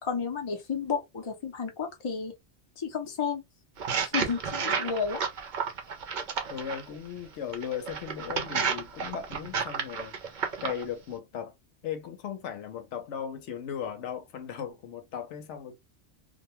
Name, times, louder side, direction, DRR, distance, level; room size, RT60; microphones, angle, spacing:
voice 1, 0.0-2.3 2.8-3.4 4.0-5.2, left 6 dB, 30° left, 0.6 m, -32 dB
sound 1, 3.8-6.8 7.5-10.8, right 6 dB, 50° right, 0.6 m, -31 dB
voice 2, 6.5-10.2 10.6-11.5 11.8-15.8, left 8 dB, 90° left, 0.9 m, -37 dB
2.3 x 2.2 x 2.9 m
omnidirectional pair, 1.2 m